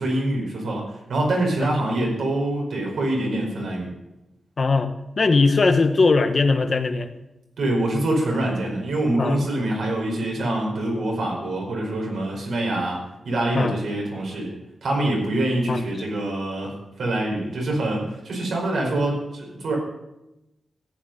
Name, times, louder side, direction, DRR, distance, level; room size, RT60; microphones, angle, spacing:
voice 1, 0.0-3.9 7.6-14.5 14.8-16.7 17.0-19.8, right 1 dB, 85° right, -1 dB, 4.9 m, -25 dB
voice 2, 4.6-4.9 5.2-7.1 9.2-9.4 13.5-13.8 15.7-15.8, left 3 dB, 45° left, 8 dB, 1.1 m, -19 dB
14.5 x 9.4 x 5.3 m, 0.93 s
wide cardioid pair, 95°, 0 cm